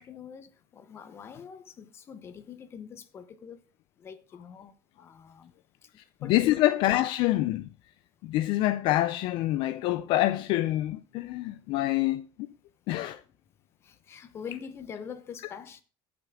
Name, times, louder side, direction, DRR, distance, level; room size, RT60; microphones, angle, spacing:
voice 1, 0.0-3.6 4.0-5.5 5.8-6.6 13.0-13.2 13.8-15.8, left 7 dB, 25° left, 0.8 m, -44 dB
voice 2, 6.2-7.7 8.2-12.3 12.9-13.2, left 15 dB, 50° left, 0.4 m, -26 dB
16.0 x 6.0 x 3.6 m
cardioid pair, 175°, 11 cm